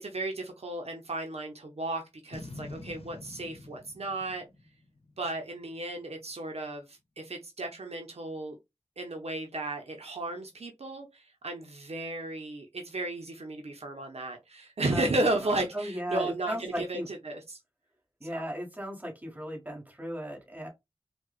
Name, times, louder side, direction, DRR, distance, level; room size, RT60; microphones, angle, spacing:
voice 1, 0.0-4.4 5.2-8.6 9.0-17.6, right 2 dB, 75° right, 0.7 m, -34 dB
Boom, 2.3-5.6, left 2 dB, 65° left, 0.8 m, -46 dB
voice 2, 14.9-17.1 18.2-20.7, equal, 15° right, 1.7 m, -36 dB
4.6 x 2.2 x 2.4 m
wide cardioid pair, 45°, 11 cm